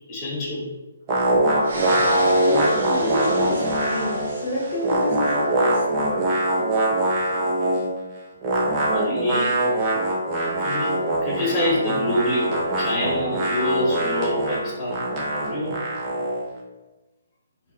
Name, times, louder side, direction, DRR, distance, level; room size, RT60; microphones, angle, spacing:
voice 1, 0.1-0.7 8.9-9.7 10.6-15.0 15.3-15.8, left 1 dB, 15° left, -7 dB, 0.9 m, -26 dB
sound 1, 1.1-4.4 4.6-7.9 8.4-16.4, right 1 dB, 25° right, 0.4 m, -23 dB
sound 2, 1.6-5.5, right 1 dB, 65° right, 0.7 m, -31 dB
voice 2, 2.4-6.2, left 1 dB, 45° left, -5 dB, 0.7 m, -29 dB
2.4 x 2.1 x 2.4 m, 1.0 s
hypercardioid pair, 155°, 0 cm